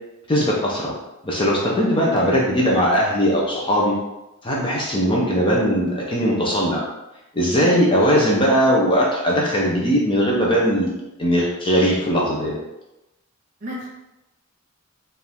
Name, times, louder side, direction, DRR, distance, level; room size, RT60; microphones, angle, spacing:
voice 1, 0.3-0.9 1.2-3.9 4.4-6.8 7.3-12.5, equal, 25° left, -4 dB, 0.7 m, -19 dB
voice 2, 7.6-7.9 13.6-13.9, equal, 35° right, -4 dB, 1.3 m, -33 dB
4.9 x 2.6 x 3.5 m, 0.94 s
head